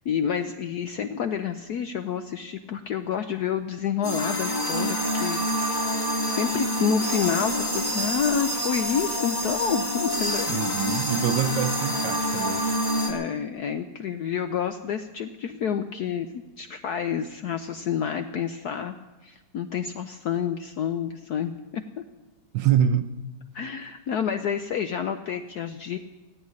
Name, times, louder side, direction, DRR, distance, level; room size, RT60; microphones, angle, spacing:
voice 1, 0.0-10.6 13.0-16.3 16.6-19.0 19.2-21.8 23.5-26.0, left 8 dB, 70° left, 0.9 m, -29 dB
sound 1, 4.0-13.1, equal, 10° left, 2.1 m, -27 dB
voice 2, 10.5-12.7 22.5-23.1, right 9 dB, 70° right, 1.2 m, -25 dB
16.5 x 8.0 x 9.8 m
omnidirectional pair, 2.3 m